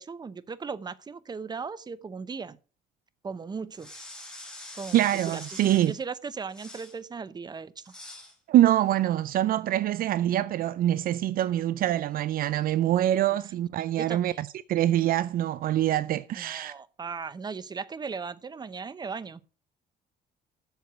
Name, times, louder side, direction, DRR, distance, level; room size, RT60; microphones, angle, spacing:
voice 1, 0.0-2.6 3.2-3.9 4.7-7.9 13.9-14.4 16.3-19.4, right 5 dB, 25° right, 0.8 m, -37 dB
sound 1, 3.7-6.0 6.5-7.0 7.8-8.3, left 1 dB, 5° left, 3.3 m, -44 dB
voice 2, 4.9-5.9 8.5-16.7, right 13 dB, 60° right, 0.4 m, -25 dB
8.1 x 6.5 x 7.9 m
cardioid pair, 110°, 17 cm